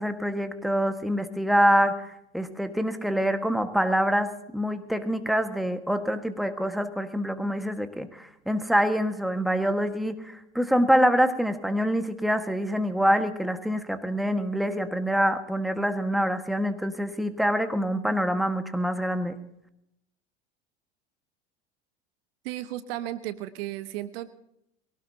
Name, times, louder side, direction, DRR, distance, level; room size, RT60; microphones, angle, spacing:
voice 1, 0.0-19.4, equal, ahead, 8 dB, 1.6 m, -25 dB
voice 2, 22.4-24.3, right 14 dB, 60° right, 13 dB, 1.1 m, -34 dB
23.0 x 17.5 x 2.9 m, 0.79 s
hypercardioid pair, 80°, 33 cm